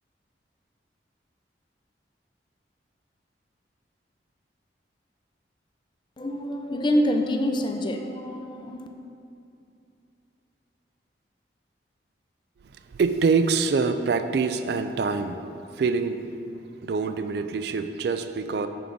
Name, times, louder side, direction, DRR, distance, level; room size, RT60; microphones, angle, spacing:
voice 1, 6.2-8.9, left 1 dB, 25° left, 4 dB, 0.4 m, -26 dB
voice 2, 12.9-15.4 15.7-16.3 16.6-18.7, right 4 dB, 60° right, 9 dB, 0.3 m, -25 dB
6.0 x 4.8 x 5.3 m, 2.6 s
head